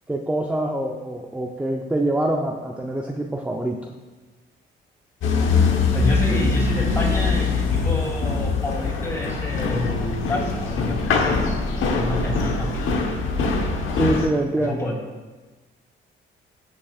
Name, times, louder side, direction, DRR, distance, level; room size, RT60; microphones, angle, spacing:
voice 1, 0.1-3.8 13.9-14.8, right 1 dB, 5° right, 2 dB, 0.6 m, -25 dB
sound 1, 5.2-14.3, left 4 dB, 80° left, 1.1 m, -22 dB
voice 2, 5.9-11.3 11.9-13.0 14.6-14.9, left 1 dB, 15° left, -2 dB, 3.0 m, -29 dB
16.5 x 6.1 x 2.5 m, 1.3 s
cardioid pair, 90°, 20 cm